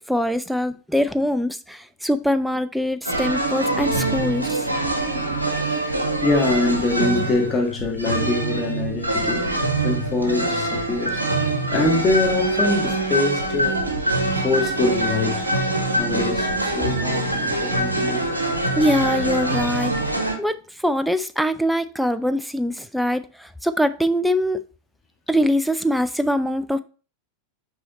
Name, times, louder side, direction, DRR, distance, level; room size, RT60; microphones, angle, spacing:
voice 1, 0.0-4.7 18.8-19.9 20.4-20.6 20.8-24.6 25.3-26.8, equal, ahead, 0.5 m, -23 dB
sound 1, 3.0-20.3, right 1 dB, 85° right, 1.1 m, -24 dB
voice 2, 5.7-9.4 9.8-11.2 11.7-13.8 14.4-15.5 16.0-18.3, left 2 dB, 20° left, 1.6 m, -24 dB
6.2 x 4.8 x 4.0 m
figure-of-eight pair, 90°, 0 cm